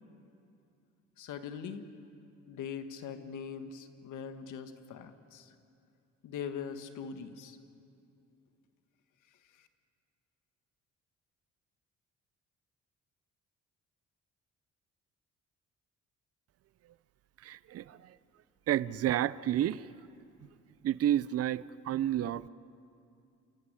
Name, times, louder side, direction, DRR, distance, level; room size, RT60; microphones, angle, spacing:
voice 1, 1.2-1.8 2.5-5.5 6.2-7.6, left 7 dB, 80° left, 1.6 m, -41 dB
voice 2, 17.4-18.2 18.7-19.9 20.8-22.5, right 11 dB, 55° right, 0.6 m, -30 dB
28.5 x 16.0 x 9.9 m
cardioid pair, 90°, 30 cm